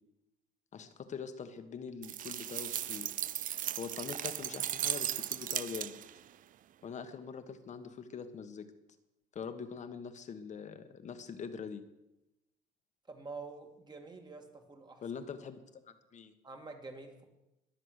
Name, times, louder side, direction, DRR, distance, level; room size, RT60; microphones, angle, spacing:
voice 1, 0.7-3.1 3.8-6.0 6.8-8.7 9.3-11.9 15.0-16.3, left 6 dB, 45° left, 9 dB, 1.5 m, -43 dB
sound 1, 2.0-6.2, right 11 dB, 50° right, 0.5 m, -36 dB
voice 2, 13.1-15.0 16.4-17.2, right 3 dB, 25° right, 4 dB, 2.5 m, -47 dB
22.0 x 7.6 x 6.6 m, 0.93 s
cardioid pair, 110°, 17 cm